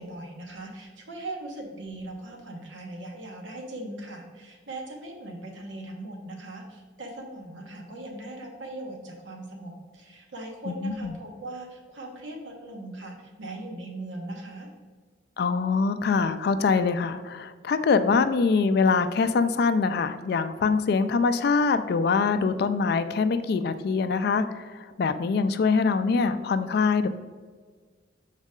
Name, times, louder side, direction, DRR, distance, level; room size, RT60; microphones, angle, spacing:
voice 1, 0.0-14.7, right 2 dB, 75° right, 1 dB, 1.2 m, -39 dB
voice 2, 10.7-11.1 15.4-27.1, left 4 dB, 55° left, 11 dB, 0.3 m, -24 dB
6.4 x 4.0 x 3.6 m, 1.5 s
head